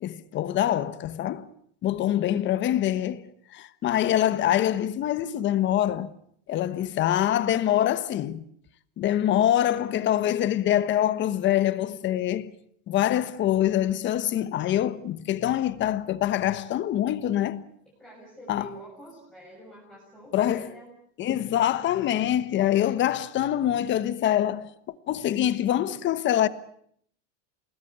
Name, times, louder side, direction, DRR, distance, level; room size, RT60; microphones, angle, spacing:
voice 1, 0.0-1.5 1.8-6.1 6.5-8.4 9.0-12.5 12.9-17.6 18.5-18.7 20.3-20.7 21.2-24.7 25.1-26.5, left 12 dB, 30° left, 1.2 m, -25 dB
voice 2, 18.0-20.9, right 1 dB, ahead, 7.0 m, -46 dB
28.5 x 20.5 x 8.2 m
cardioid pair, 160°, 35 cm